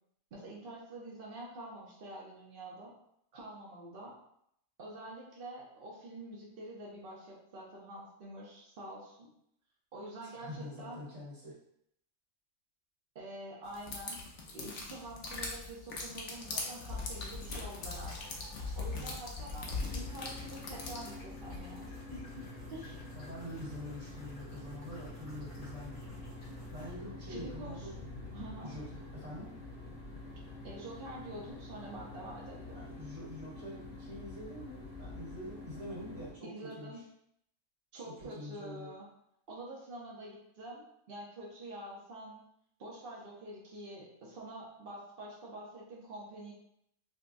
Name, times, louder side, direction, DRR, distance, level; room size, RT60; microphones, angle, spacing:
voice 1, 0.3-2.9 3.3-4.1 4.8-9.3 9.9-11.0 13.1-14.2 14.5-18.1 18.8-22.2 22.7-23.0 27.3-27.9 28.3-28.7 30.6-32.9 36.4-37.0 37.9-39.1 39.5-42.4 42.8-46.5, right 1 dB, 50° right, -4 dB, 0.8 m, -46 dB
voice 2, 10.2-11.6 18.9-19.2 23.1-26.0 26.7-28.0 28.6-29.6 32.7-36.9 38.0-38.9, equal, 70° right, -6 dB, 1.9 m, -45 dB
sound 1, 13.7-21.2, left 3 dB, 65° left, 1.0 m, -40 dB
sound 2, 14.3-26.9, left 2 dB, 85° left, 2.2 m, -56 dB
sound 3, 19.8-36.3, left 2 dB, 40° left, 1.1 m, -47 dB
5.2 x 2.2 x 2.5 m, 0.73 s
omnidirectional pair, 1.5 m